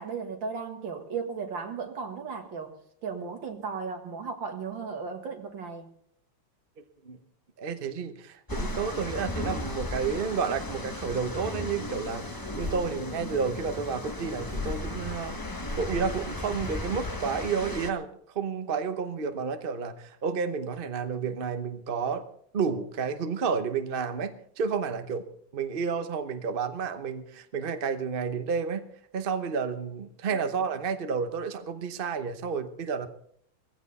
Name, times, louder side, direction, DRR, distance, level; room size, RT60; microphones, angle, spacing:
voice 1, 0.0-2.7 3.0-5.9 30.3-30.4, right 5 dB, 75° right, 5 dB, 2.5 m, -35 dB
voice 2, 7.6-15.4 15.7-18.1 18.3-22.2 22.5-25.2 25.5-28.8 29.1-33.1, right 5 dB, 40° right, 8 dB, 0.8 m, -31 dB
sound 1, 8.5-17.9, left 2 dB, 15° left, 0.7 m, -35 dB
17.5 x 15.5 x 4.1 m, 0.65 s
omnidirectional pair, 2.1 m